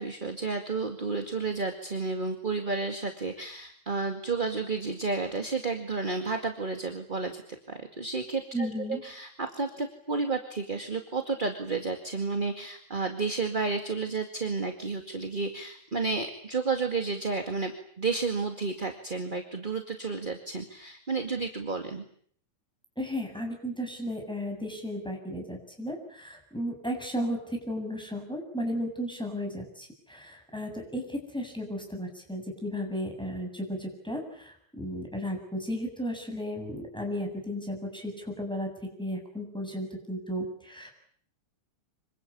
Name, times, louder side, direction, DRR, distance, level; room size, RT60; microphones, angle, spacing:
voice 1, 0.0-7.4 7.7-17.7 18.0-22.0, right 4 dB, 20° right, 5 dB, 1.8 m, -31 dB
voice 2, 8.5-9.0 23.0-38.7 39.0-40.9, equal, ahead, 2 dB, 7.4 m, -34 dB
26.5 x 24.0 x 8.7 m, 0.62 s
omnidirectional pair, 3.3 m